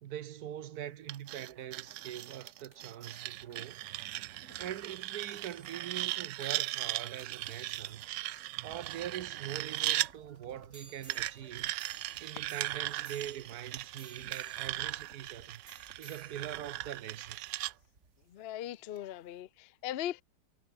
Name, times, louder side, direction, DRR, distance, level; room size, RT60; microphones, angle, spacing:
voice 1, 0.0-3.8 4.3-8.0 8.6-11.7 12.2-15.6 16.0-17.4, right 11 dB, 65° right, 1.3 m, -43 dB
sound 1, 0.8-18.4 19.0-19.1, right 4 dB, 40° right, 2.7 m, -57 dB
sound 2, 1.1-10.1 11.1-17.7, right 16 dB, 90° right, 1.3 m, -38 dB
voice 2, 18.3-20.2, left 12 dB, 65° left, 0.6 m, -39 dB
omnidirectional pair, 1.9 m